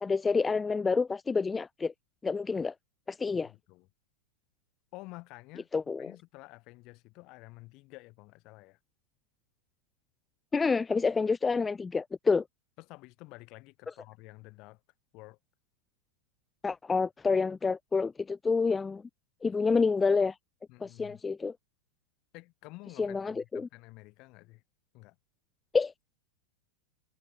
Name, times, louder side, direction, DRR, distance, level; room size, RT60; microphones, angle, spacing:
voice 1, 0.0-1.9 2.2-2.7 3.1-3.5 5.7-6.1 10.5-12.4 16.6-19.0 19.4-20.3 20.8-21.5 23.0-23.7 25.7-25.9, left 4 dB, 15° left, 0.7 m, -28 dB
voice 2, 3.3-3.9 4.9-5.7 6.0-8.8 12.8-14.8 15.1-15.4 20.7-21.2 22.3-24.6 24.9-25.2, left 23 dB, 40° left, 3.5 m, -50 dB
figure-of-eight pair, 90°, 0 cm